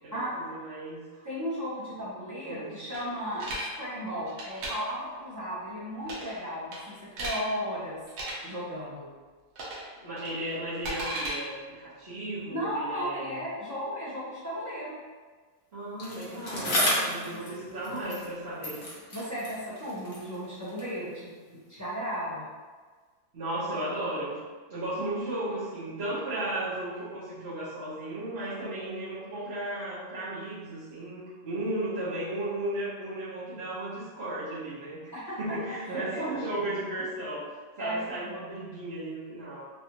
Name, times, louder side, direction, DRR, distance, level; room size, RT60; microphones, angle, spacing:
voice 1, 0.0-1.3 2.2-2.8 9.9-13.4 15.7-18.8 23.3-24.4 24.7-35.1 35.4-37.5 37.8-39.6, right 1 dB, 45° right, -14 dB, 1.2 m, -35 dB
voice 2, 1.2-8.0 8.4-9.1 12.5-15.0 17.0-17.4 19.1-21.3 21.7-22.5 35.1-35.4 36.1-36.2 37.8-38.3, equal, 20° right, -9 dB, 0.4 m, -35 dB
sound 1, 2.9-3.7 4.3-4.7 6.0-6.4 6.7-7.4 8.1-8.3 9.6-9.9 10.2-11.4, right 1 dB, 80° right, 1.3 m, -35 dB
Bicycle, 16.0-18.4 18.6-21.0 21.8-21.9, left 1 dB, 45° left, 0.9 m, -33 dB
3.2 x 2.5 x 2.9 m, 1.4 s
omnidirectional pair, 1.7 m